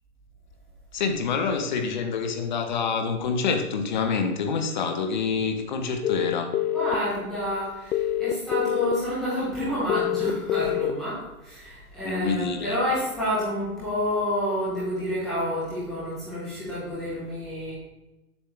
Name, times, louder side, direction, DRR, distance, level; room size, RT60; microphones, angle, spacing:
voice 1, 0.9-6.5 12.0-12.8, left 5 dB, 30° left, 6 dB, 0.8 m, -27 dB
sound 1, 6.0-6.9 7.9-8.9 9.9-10.9, left 12 dB, 80° left, 0.5 m, -25 dB
voice 2, 6.7-17.7, equal, ahead, -12 dB, 0.5 m, -29 dB
7.1 x 6.4 x 3.2 m, 1.0 s
hypercardioid pair, 150°, 45 cm